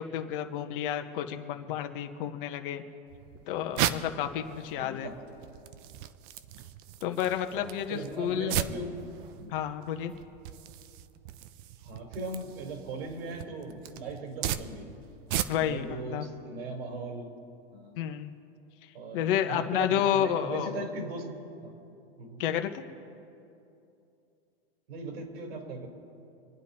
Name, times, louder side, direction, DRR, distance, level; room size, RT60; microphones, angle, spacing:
voice 1, 0.0-2.8 3.5-5.1 7.0-8.5 9.5-10.1 15.5-16.3 18.0-18.3 19.1-20.8 22.4-22.8, left 10 dB, 55° left, 6 dB, 1.5 m, -30 dB
sound 1, 3.1-15.9, right 11 dB, 55° right, 0.9 m, -37 dB
voice 2, 4.8-5.2 7.5-9.0 9.4-9.5 11.8-14.9 15.5-17.3 17.7-18.0 18.9-21.3 21.6-21.7 22.2-22.4 24.9-25.9, right 2 dB, 70° right, 2 dB, 4.3 m, -38 dB
28.0 x 9.5 x 4.4 m, 2.7 s
hypercardioid pair, 125°, 31 cm